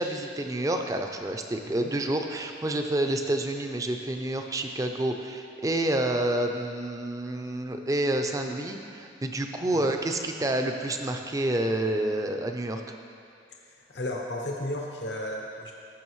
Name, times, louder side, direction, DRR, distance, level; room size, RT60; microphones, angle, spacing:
voice 1, 0.0-12.8, right 1 dB, 20° right, 5 dB, 0.4 m, -28 dB
voice 2, 13.9-15.7, left 1 dB, 75° left, 0 dB, 0.8 m, -34 dB
14.0 x 6.3 x 3.1 m, 2.5 s
head